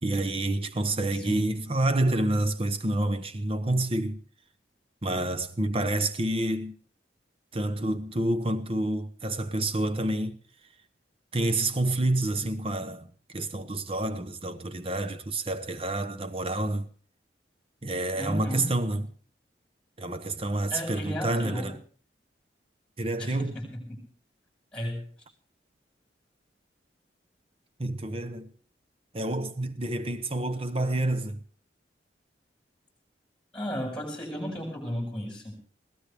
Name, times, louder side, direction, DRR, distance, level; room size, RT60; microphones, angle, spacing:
voice 1, 0.0-4.2 5.0-6.8 7.5-10.4 11.3-16.9 17.8-19.1 20.0-21.7 23.0-23.5 27.8-28.5 29.1-31.4, right 1 dB, 30° right, 0.9 m, -28 dB
voice 2, 1.1-1.6 18.2-18.7 20.7-21.8 23.2-24.1 24.7-25.1 33.5-35.5, equal, 5° left, 5.7 m, -34 dB
21.5 x 16.5 x 3.5 m
head